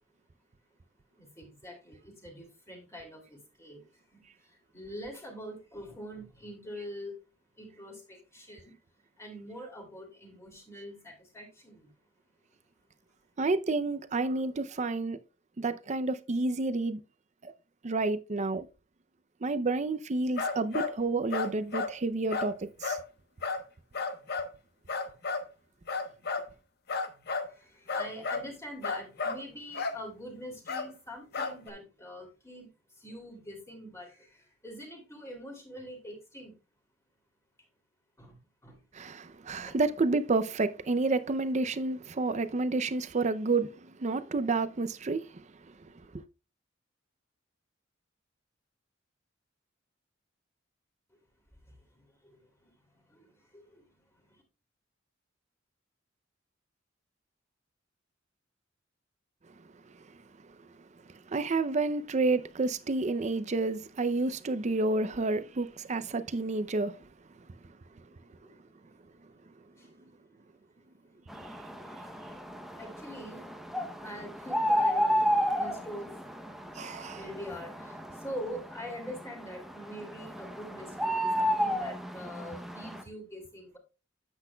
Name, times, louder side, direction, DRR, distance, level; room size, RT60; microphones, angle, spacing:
voice 1, 1.2-3.8 4.1-4.2 4.7-7.2 7.6-8.7 9.2-11.9 27.6-32.7 33.0-34.3 34.6-36.5 38.2-38.4 38.6-38.8 39.6-39.7 53.1-53.3 53.5-53.8 68.4-68.5 69.8-69.9 72.8-73.5 74.0-76.1 77.1-83.8, equal, 15° left, 2.7 m, -44 dB
voice 2, 13.4-15.2 15.6-17.0 17.4-17.5 17.8-18.7 19.4-23.0 38.9-45.4 45.8-45.9 46.1-46.2 61.3-67.0 71.4-71.5 76.8-77.2, right 3 dB, 35° right, 0.5 m, -30 dB
sound 1, 20.4-21.0 21.3-21.9 22.3-22.5 22.8-23.0 23.4-23.6 23.9-24.5 24.9-25.5 25.9-26.5 26.9-27.5 27.9-28.5 28.8-29.4 29.7-30.0 30.7-30.9 31.3-31.7, left 4 dB, 55° left, 1.1 m, -32 dB
sound 2, 71.3-83.0, equal, ahead, 0.7 m, -32 dB
9.7 x 7.9 x 2.3 m
head